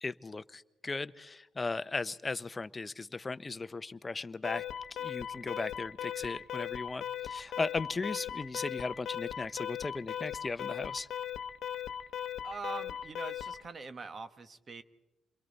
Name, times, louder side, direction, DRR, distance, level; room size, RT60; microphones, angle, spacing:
voice 1, 0.0-4.6 5.0-11.1, left 3 dB, 25° left, 14 dB, 0.7 m, -37 dB
Alarm, 4.4-13.7, left 9 dB, 70° left, 0.8 m, -38 dB
voice 2, 12.4-14.8, right 3 dB, 40° right, 11 dB, 1.2 m, -43 dB
28.5 x 22.5 x 4.1 m, 1.0 s
cardioid pair, 90°, 0 cm